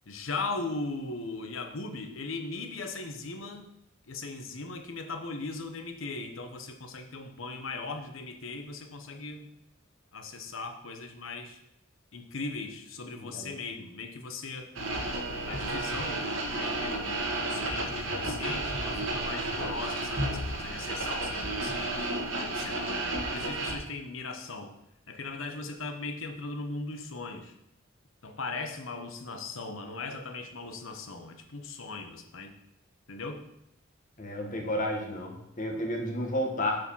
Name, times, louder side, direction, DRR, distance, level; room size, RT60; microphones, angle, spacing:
voice 1, 0.1-3.7 4.1-9.5 10.1-11.6 12.1-14.7 15.4-16.3 16.6-22.1 22.5-24.7 25.1-27.5 28.2-32.5 33.1-33.4, left 3 dB, 75° left, 6 dB, 1.0 m, -38 dB
voice 2, 13.2-13.5 34.2-36.8, left 1 dB, 40° left, 1 dB, 1.6 m, -31 dB
sound 1, 14.8-23.7, right 2 dB, 75° right, 1.5 m, -32 dB
7.8 x 4.8 x 5.6 m, 0.82 s
head